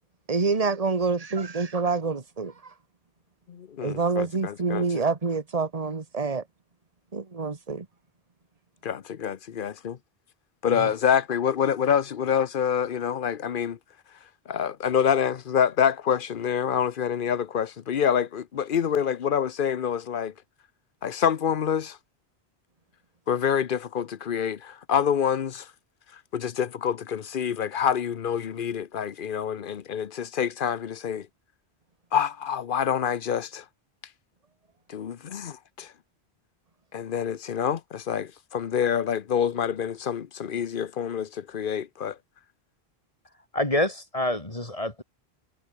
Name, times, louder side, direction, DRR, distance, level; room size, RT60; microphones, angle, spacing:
voice 1, 0.3-2.7 3.8-6.5 7.1-7.9 10.7-10.9, right 4 dB, 35° right, 1.6 m, -27 dB
voice 2, 3.5-5.0 8.8-10.0 10.6-13.8 14.5-20.3 21.0-22.0 23.3-25.7 26.3-31.3 32.1-33.6 34.9-35.9 36.9-42.2, left 8 dB, 55° left, 0.9 m, -27 dB
voice 3, 43.5-45.0, left 1 dB, 35° left, 3.5 m, -27 dB
omnidirectional pair, 1.1 m